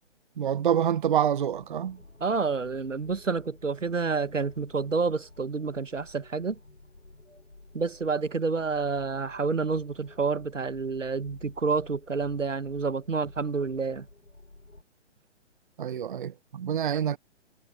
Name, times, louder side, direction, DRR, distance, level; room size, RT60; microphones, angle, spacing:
voice 1, 0.4-2.0 15.8-17.2, right 9 dB, 45° right, 0.6 m, -27 dB
sound 1, 1.5-14.8, left 2 dB, 90° left, 4.4 m, -52 dB
voice 2, 2.2-6.6 7.7-14.1 16.9-17.0, right 4 dB, 90° right, 1.1 m, -29 dB
figure-of-eight pair, 135°, 36 cm